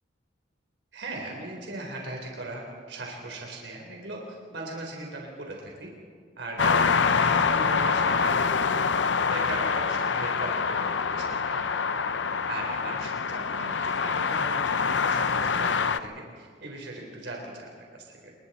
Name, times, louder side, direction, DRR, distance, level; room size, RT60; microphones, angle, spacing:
voice 1, 0.9-4.2 4.5-5.9 6.4-8.9 9.2-11.8 12.5-18.3, right 2 dB, 75° right, 0 dB, 3.8 m, -38 dB
sound 1, 6.6-16.0, left 5 dB, 80° left, 0.7 m, -25 dB
28.0 x 22.5 x 4.3 m, 2.1 s
head